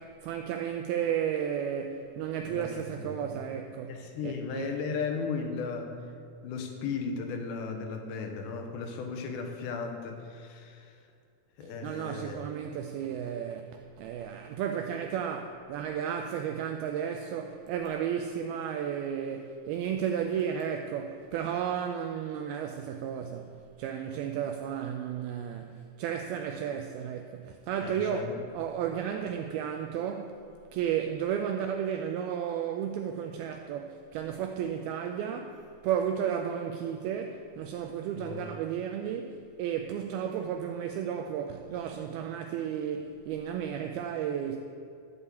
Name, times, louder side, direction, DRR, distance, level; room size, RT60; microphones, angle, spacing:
voice 1, 0.0-4.8 11.8-30.4 30.7-44.6, right 8 dB, 85° right, 2.2 m, -33 dB
voice 2, 3.0-3.4 3.9-5.9 6.4-10.9 11.6-12.4 27.8-28.4 38.1-38.5, left 5 dB, 85° left, 3.2 m, -36 dB
12.5 x 5.4 x 8.1 m
omnidirectional pair, 4.9 m